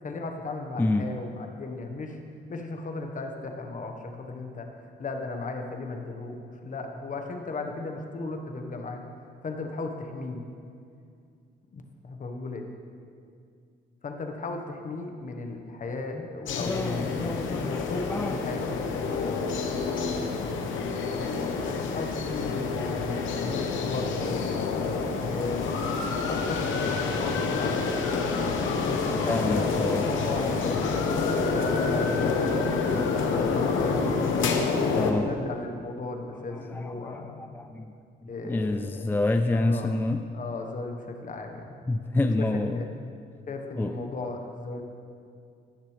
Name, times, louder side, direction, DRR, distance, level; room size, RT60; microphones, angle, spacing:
voice 1, 0.0-2.2 2.5-4.7 5.0-9.0 9.4-10.4 11.7-12.6 14.0-18.7 21.7-24.5 25.2-28.2 28.9-31.1 31.6-37.4 38.3-39.2 39.5-39.9 40.3-41.8 42.4-42.5 42.7-42.9 43.5-44.8, left 3 dB, 40° left, 4 dB, 1.2 m, -36 dB
voice 2, 0.8-1.1 16.1-16.3 16.6-18.4 28.6-30.1 30.3-30.5 33.6-35.4 36.5-37.9 38.2-40.2 41.9-42.8 43.7-44.0, left 2 dB, 10° left, 6 dB, 0.3 m, -29 dB
sound 1, 16.5-35.1, left 4 dB, 80° left, 1.0 m, -28 dB
18.0 x 6.5 x 3.3 m, 2.4 s
cardioid pair, 90°, 20 cm